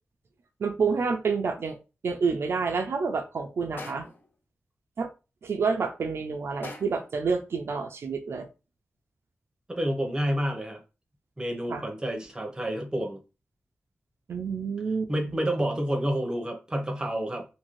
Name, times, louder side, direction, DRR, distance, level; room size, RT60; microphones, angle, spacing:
voice 1, 0.6-1.8 2.0-4.1 5.0-5.1 5.4-8.5 11.7-11.8 14.3-15.4, right 5 dB, 75° right, 0.4 m, -28 dB
sound 1, 3.8-4.3 6.6-7.2, left 2 dB, 55° left, 0.7 m, -42 dB
voice 2, 9.7-10.8 11.4-13.2 15.1-17.5, equal, 15° right, 0.7 m, -29 dB
2.7 x 2.6 x 3.1 m
wide cardioid pair, 140°, 4 cm